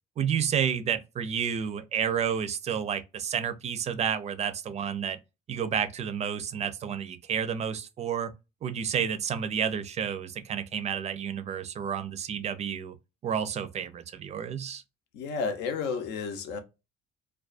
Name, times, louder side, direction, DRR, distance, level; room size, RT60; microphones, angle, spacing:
voice 1, 0.2-5.2 5.5-8.3 8.6-12.9 13.2-14.8, right 8 dB, 40° right, 0.4 m, -30 dB
voice 2, 15.1-16.6, left 5 dB, 85° left, 0.6 m, -31 dB
2.3 x 2.2 x 2.4 m
cardioid pair, 110°, 17 cm